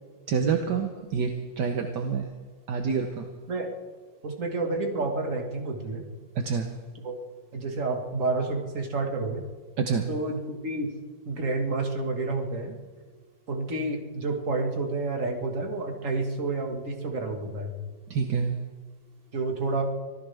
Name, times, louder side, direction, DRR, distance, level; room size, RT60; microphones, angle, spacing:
voice 1, 0.3-2.3 2.7-3.3 6.3-6.7 9.8-10.1 18.1-18.6, right 6 dB, 70° right, 4 dB, 1.6 m, -27 dB
voice 2, 4.2-6.1 7.0-7.2 7.5-9.4 10.1-10.9 11.3-12.8 13.5-17.8 19.3-19.8, right 3 dB, 45° right, 2 dB, 2.2 m, -29 dB
25.0 x 15.5 x 3.5 m, 1.4 s
omnidirectional pair, 2.0 m